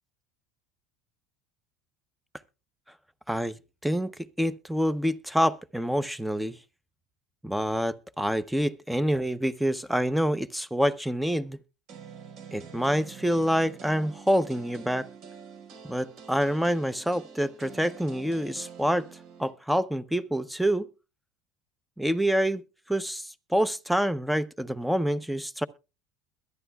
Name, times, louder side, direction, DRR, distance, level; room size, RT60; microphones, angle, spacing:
voice 1, 4.4-6.6 7.4-11.6 12.5-15.1 15.9-19.1 19.4-20.9 22.0-25.7, equal, 5° right, 0.7 m, -27 dB
Jazz-E Piano, 11.9-19.5, right 6 dB, 60° right, 4.9 m, -46 dB
22.0 x 11.0 x 2.3 m
supercardioid pair, 110°, 0 cm